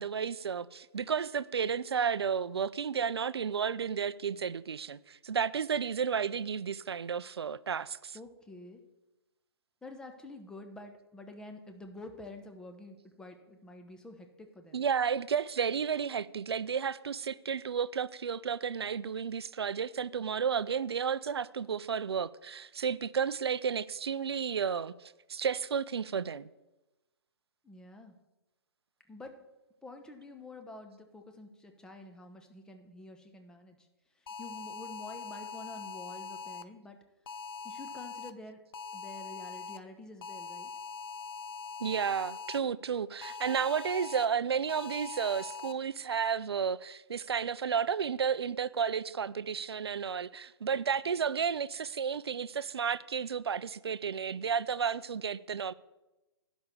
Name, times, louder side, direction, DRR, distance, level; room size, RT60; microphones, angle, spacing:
voice 1, 0.0-8.2 14.7-26.5 41.8-55.7, right 7 dB, 75° right, 0.5 m, -32 dB
voice 2, 8.1-8.8 9.8-14.8 27.6-28.1 29.1-29.4 29.8-33.9 34.4-37.0 37.6-38.6 38.9-40.7, left 2 dB, 5° left, 0.9 m, -48 dB
sound 1, 34.3-36.6 37.3-38.3 38.7-39.8 40.2-42.6 43.2-44.2 44.7-45.7, left 5 dB, 60° left, 0.6 m, -42 dB
11.5 x 6.1 x 6.8 m
figure-of-eight pair, 130°, 14 cm